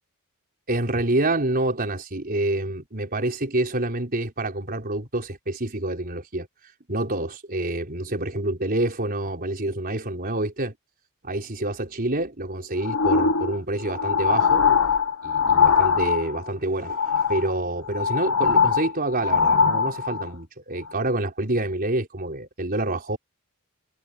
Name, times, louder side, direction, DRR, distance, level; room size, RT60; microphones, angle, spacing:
voice 1, 0.7-6.5 6.9-10.7 11.2-14.6 15.2-17.0 17.3-23.2, right 2 dB, 40° right, 4.4 m, -27 dB
sound 1, 12.8-16.5 16.8-17.5 17.9-20.3 20.9-21.0, left 6 dB, 70° left, 1.2 m, -21 dB
head